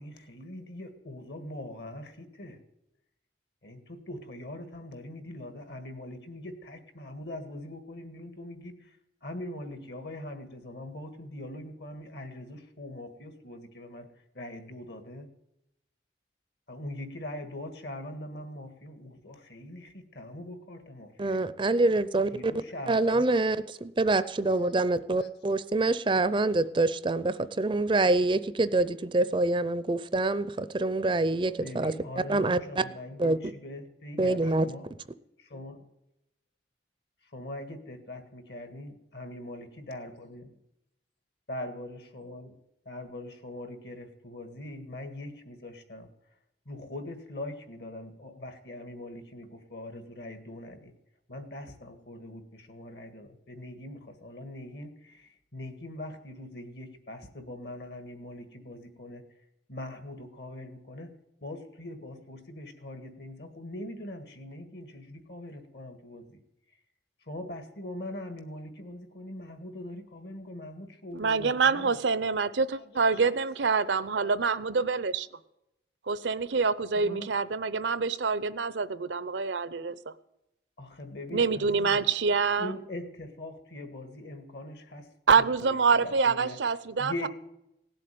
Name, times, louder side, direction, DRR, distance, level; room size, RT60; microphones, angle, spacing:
voice 1, 0.0-2.6 3.6-9.0 9.2-14.1 14.3-15.3 16.7-21.4 22.3-23.6 24.3-24.7 25.2-25.3 31.6-34.9 35.5-35.8 37.3-40.5 41.5-42.6 42.9-46.1 46.7-50.9 51.3-59.2 59.7-61.1 61.4-66.4 67.3-72.0 72.8-73.5 73.8-73.9 74.2-74.3 77.0-77.3 80.8-82.1 82.6-85.1 85.3-86.6 87.0-87.3, left 1 dB, 65° left, 8 dB, 1.8 m, -42 dB
voice 2, 21.2-22.5 22.9-32.8 33.2-33.5 34.2-34.7, right 2 dB, 25° right, 15 dB, 0.5 m, -26 dB
voice 3, 71.1-75.3 76.1-80.1 81.3-82.7 85.3-87.3, right 5 dB, 85° right, 16 dB, 0.7 m, -26 dB
17.5 x 7.7 x 9.3 m, 0.87 s
head